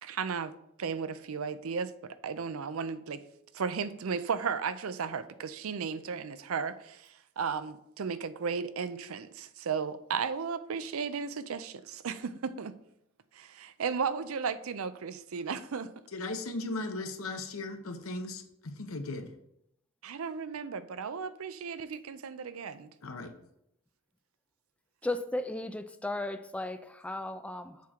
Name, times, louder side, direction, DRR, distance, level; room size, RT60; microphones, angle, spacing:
voice 1, 0.0-3.2 3.5-12.7 13.3-15.9 20.0-22.9, right 6 dB, 70° right, 0.5 m, -35 dB
voice 2, 16.1-19.3 23.0-23.3, left 2 dB, 70° left, 0.9 m, -37 dB
voice 3, 25.0-27.8, left 2 dB, 5° left, 0.3 m, -35 dB
7.4 x 3.7 x 5.8 m
head